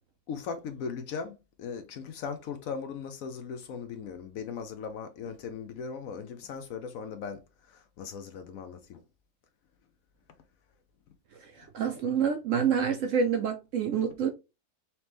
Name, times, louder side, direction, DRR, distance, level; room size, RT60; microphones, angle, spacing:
voice 1, 0.3-9.0, left 6 dB, 65° left, 0.9 m, -38 dB
voice 2, 11.4-14.3, right 7 dB, 70° right, 0.7 m, -27 dB
4.2 x 2.9 x 3.3 m
omnidirectional pair, 1.7 m